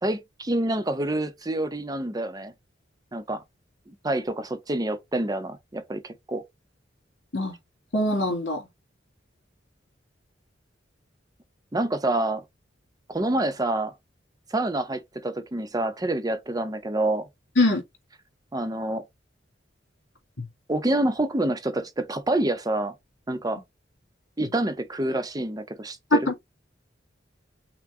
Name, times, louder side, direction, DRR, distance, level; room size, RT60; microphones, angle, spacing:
voice 1, 0.0-2.5 3.1-3.4 3.9-6.4 11.7-12.4 13.1-13.9 14.5-17.3 18.5-19.0 20.7-22.9 23.3-23.6 24.4-26.0, right 1 dB, 20° right, 0.7 m, -27 dB
voice 2, 7.9-8.6 17.6-17.8 26.1-26.3, left 1 dB, 80° left, 2.5 m, -22 dB
6.0 x 2.2 x 3.6 m
head